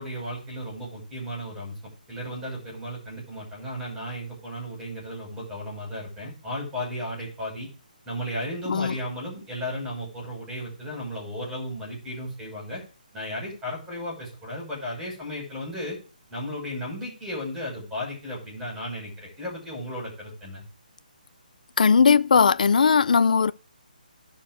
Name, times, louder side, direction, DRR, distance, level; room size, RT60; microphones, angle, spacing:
voice 1, 0.0-1.7 2.1-7.7 8.0-12.8 13.1-16.0 16.3-20.6, equal, 5° right, 6.1 m, -34 dB
voice 2, 21.8-23.5, left 5 dB, 60° left, 0.6 m, -18 dB
11.5 x 4.6 x 6.2 m
hypercardioid pair, 165°, 5 cm